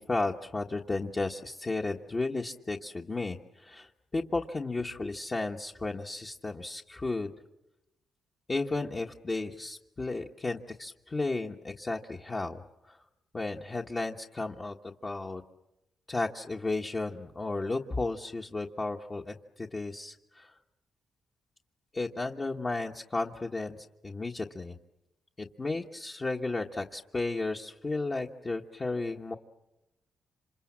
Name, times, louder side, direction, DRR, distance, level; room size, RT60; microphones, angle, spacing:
voice 1, 0.0-7.3 8.5-12.6 12.9-13.0 13.3-15.4 16.1-20.5 21.9-23.8 24.0-24.8 25.4-29.3, left 3 dB, 30° left, 1 dB, 1.3 m, -34 dB
27.5 x 26.5 x 7.4 m, 0.94 s
cardioid pair, 80°, 0 cm